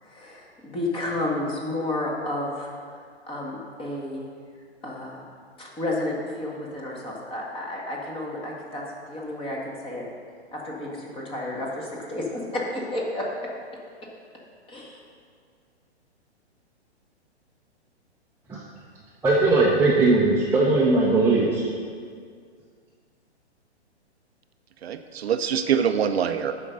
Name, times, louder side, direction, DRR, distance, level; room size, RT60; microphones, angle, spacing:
voice 1, 0.0-3.0 3.3-4.3 4.8-5.2 5.6-10.0 10.5-13.3 14.7-15.0, left 1 dB, 15° left, -2 dB, 1.6 m, -31 dB
voice 2, 19.2-21.7, right 3 dB, 5° right, -6 dB, 0.8 m, -19 dB
voice 3, 24.8-26.5, right 8 dB, 65° right, 8 dB, 0.6 m, -24 dB
8.3 x 5.3 x 6.6 m, 2.1 s
hypercardioid pair, 130°, 34 cm